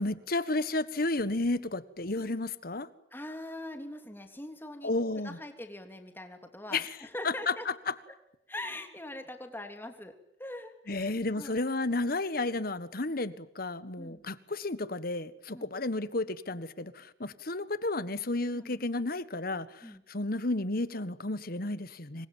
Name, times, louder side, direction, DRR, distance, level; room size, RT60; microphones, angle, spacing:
voice 1, 0.0-2.9 4.8-5.4 6.7-6.9 7.2-7.5 10.9-22.3, left 2 dB, 55° left, 14 dB, 1.5 m, -32 dB
voice 2, 3.1-4.9 5.2-7.7 8.1-8.2 8.5-10.1 10.4-11.6 14.0-14.2 15.5-15.7 18.5-18.8 19.8-20.0, left 1 dB, 10° left, 5 dB, 3.4 m, -42 dB
27.0 x 22.0 x 9.2 m, 0.78 s
head